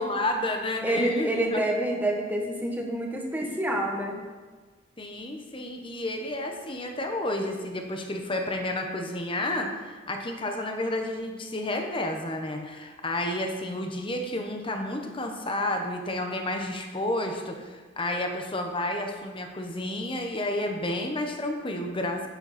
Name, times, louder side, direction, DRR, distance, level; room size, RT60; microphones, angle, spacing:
voice 1, 0.0-1.6 5.0-22.3, left 1 dB, 25° left, 3 dB, 1.1 m, -31 dB
voice 2, 0.8-4.2, right 1 dB, 10° right, 0 dB, 1.4 m, -27 dB
10.5 x 9.0 x 4.3 m, 1.4 s
head